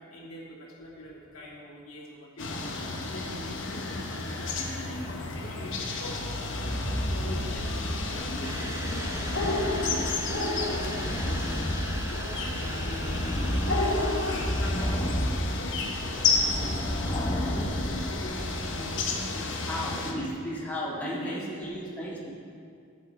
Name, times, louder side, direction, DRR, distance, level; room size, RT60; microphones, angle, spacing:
voice 1, 0.0-6.8 7.1-7.8 8.1-9.2 9.7-10.2 10.7-11.8 12.1-13.6 13.9-14.9 15.5-16.4 17.4-20.3 21.0-22.1, left 1 dB, 85° left, -4 dB, 2.1 m, -42 dB
sound 1, 2.4-20.1, left 3 dB, 60° left, 1.0 m, -31 dB
sound 2, 6.6-19.0, equal, 25° left, 1.1 m, -32 dB
sound 3, 8.4-14.7, right 3 dB, 15° right, 0.4 m, -42 dB
voice 2, 19.6-22.3, equal, 10° left, -6 dB, 1.8 m, -35 dB
13.5 x 8.1 x 3.4 m, 2.3 s
head